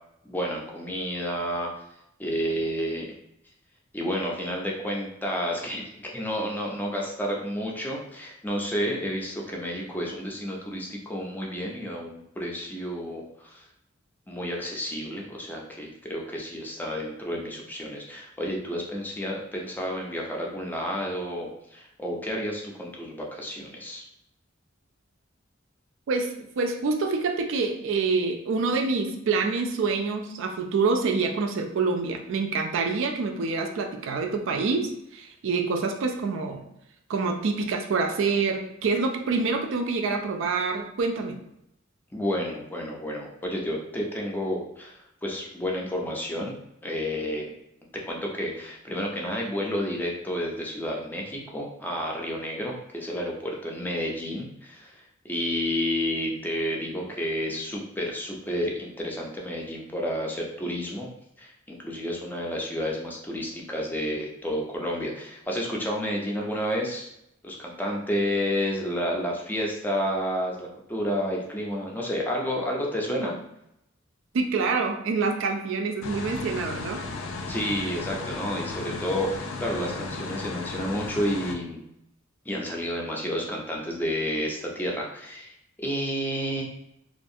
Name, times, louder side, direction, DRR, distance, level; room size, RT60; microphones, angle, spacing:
voice 1, 0.2-1.7 2.2-3.1 3.9-13.6 14.3-24.0 42.1-46.5 46.8-47.5 47.9-61.1 61.4-67.1 67.4-73.3 77.5-81.8 82.5-86.6, equal, 10° left, -1 dB, 0.4 m, -30 dB
voice 2, 26.1-36.6 37.1-41.4 73.1-73.3 74.3-77.0, right 4 dB, 65° right, 4 dB, 0.4 m, -26 dB
sound 1, 76.0-81.5, left 3 dB, 75° left, 0.4 m, -35 dB
2.5 x 2.3 x 2.6 m, 0.81 s
head